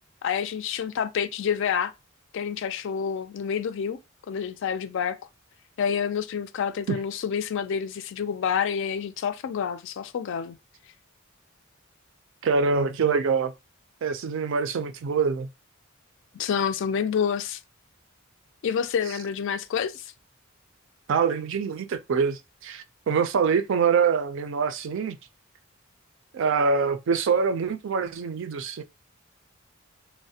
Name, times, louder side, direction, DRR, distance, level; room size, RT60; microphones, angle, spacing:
voice 1, 0.2-1.9 2.3-4.0 4.3-5.2 5.8-10.6 16.3-17.6 18.6-20.1, left 7 dB, 65° left, 0.3 m, -28 dB
voice 2, 12.4-13.5 14.0-15.5 21.1-25.2 26.3-28.8, right 5 dB, 65° right, 0.4 m, -25 dB
3.1 x 2.1 x 2.7 m
head